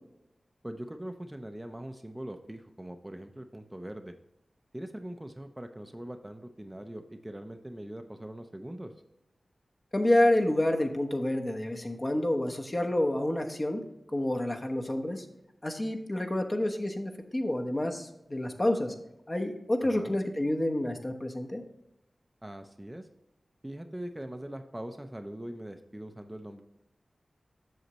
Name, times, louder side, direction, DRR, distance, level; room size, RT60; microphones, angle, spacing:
voice 1, 0.6-4.1 4.7-8.9 19.8-20.2 22.4-23.1 23.6-26.6, right 1 dB, 15° right, 6 dB, 0.6 m, -42 dB
voice 2, 9.9-13.8 14.1-15.3 15.6-18.9 19.3-21.6, left 1 dB, 35° left, 3 dB, 1.1 m, -28 dB
7.9 x 6.5 x 3.0 m, 0.88 s
cardioid pair, 45°, 0 cm